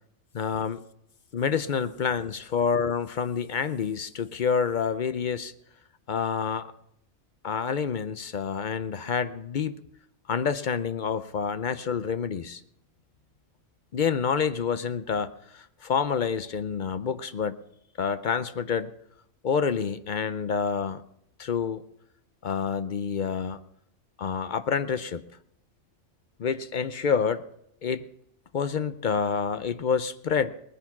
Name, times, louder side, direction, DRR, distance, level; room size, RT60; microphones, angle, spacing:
voice 1, 0.3-0.8 1.3-5.5 6.1-6.7 7.4-9.8 10.3-12.6 13.9-17.6 18.0-18.9 19.4-21.0 21.4-21.8 22.4-23.6 24.2-25.2 26.4-27.4 27.8-28.0 28.5-30.5, left 6 dB, 50° left, 12 dB, 0.5 m, -28 dB
19.5 x 10.0 x 6.0 m, 0.75 s
omnidirectional pair, 1.5 m